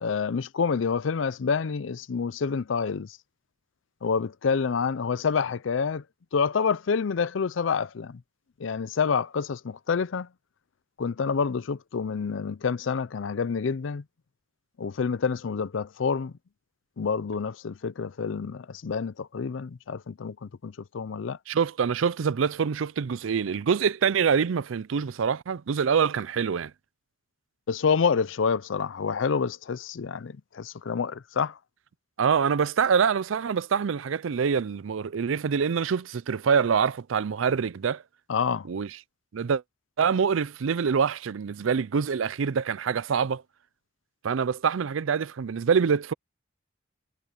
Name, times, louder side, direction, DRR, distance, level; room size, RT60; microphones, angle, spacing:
voice 1, 0.0-3.2 4.0-6.0 6.3-8.2 8.6-10.3 11.0-14.0 14.8-16.3 17.0-21.4 27.7-31.6 38.3-38.7, left 5 dB, 70° left, 0.5 m, -28 dB
voice 2, 21.5-26.7 32.2-38.0 38.7-38.9 39.3-39.6 40.0-43.4 44.2-46.1, right 6 dB, 80° right, 0.5 m, -25 dB
head